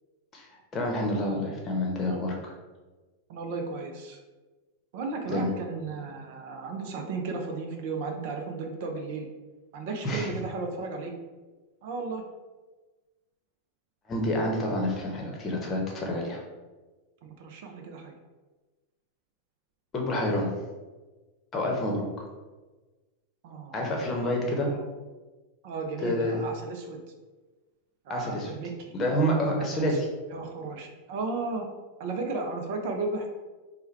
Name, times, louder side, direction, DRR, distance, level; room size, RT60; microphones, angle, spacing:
voice 1, 0.7-2.5 5.3-5.5 10.0-10.3 14.1-16.4 19.9-20.5 21.5-22.2 23.7-24.7 26.0-26.4 28.1-28.5 28.9-30.1, equal, 25° left, 0 dB, 0.9 m, -28 dB
voice 2, 3.3-4.2 4.9-9.3 9.7-11.1 11.8-12.2 17.2-18.1 23.4-23.9 24.3-24.9 25.6-27.0 28.1-28.9 29.6-30.0 30.3-31.7 32.0-33.3, right 3 dB, 50° right, 4 dB, 0.5 m, -34 dB
4.4 x 2.2 x 3.2 m, 1.2 s
figure-of-eight pair, 90°, 0 cm